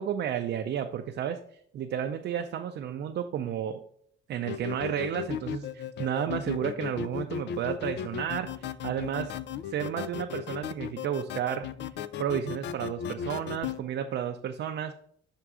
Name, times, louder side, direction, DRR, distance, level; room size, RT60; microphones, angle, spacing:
voice 1, 0.0-1.4 1.7-3.8 4.3-9.3 9.6-11.7 12.2-14.9, right 9 dB, 60° right, 5 dB, 0.5 m, -32 dB
sound 1, 4.4-13.8, left 9 dB, 65° left, 0.4 m, -36 dB
5.8 x 3.7 x 4.7 m, 0.64 s
cardioid pair, 90°, 20 cm